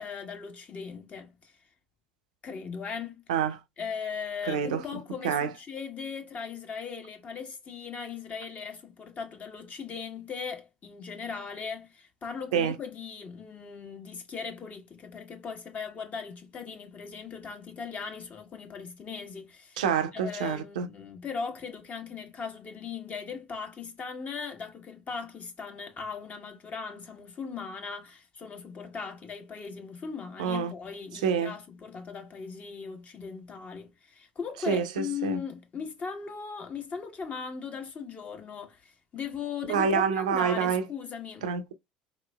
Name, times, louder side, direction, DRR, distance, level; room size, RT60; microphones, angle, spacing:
voice 1, 0.0-1.6 2.4-3.2 3.8-19.8 20.1-41.5, left 6 dB, 35° left, 1.1 m, -38 dB
voice 2, 4.5-4.8 5.2-5.5 12.5-12.7 19.8-20.9 30.4-30.7 31.2-31.5 34.7-34.8 35.2-35.4 39.7-40.8 41.4-41.7, right 7 dB, 80° right, 0.6 m, -27 dB
4.2 x 2.9 x 2.3 m
hypercardioid pair, 75°, 4 cm